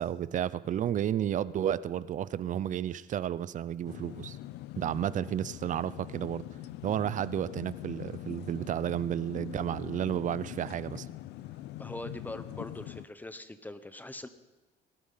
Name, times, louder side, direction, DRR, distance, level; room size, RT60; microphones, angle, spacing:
voice 1, 0.0-4.4 4.8-6.4 6.8-11.1, right 10 dB, 50° right, 17 dB, 0.7 m, -32 dB
sound 1, 3.9-13.1, left 14 dB, 85° left, 0.6 m, -43 dB
voice 2, 11.8-14.3, left 1 dB, 10° left, 12 dB, 1.1 m, -42 dB
19.5 x 12.0 x 5.8 m, 1.1 s
cardioid pair, 110°, 17 cm